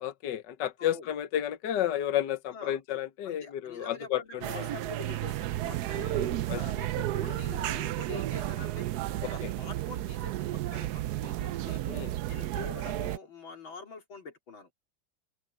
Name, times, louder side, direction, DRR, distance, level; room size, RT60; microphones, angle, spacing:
voice 1, 0.0-4.7 5.9-7.2 9.2-9.5 11.8-12.1, left 11 dB, 65° left, 1.5 m, -32 dB
voice 2, 3.2-6.7 7.2-8.9 9.3-10.4 10.7-11.8 12.3-14.7, left 4 dB, 85° left, 4.5 m, -45 dB
sound 1, 4.4-13.2, right 14 dB, 70° right, 1.0 m, -32 dB
open air
omnidirectional pair, 2.1 m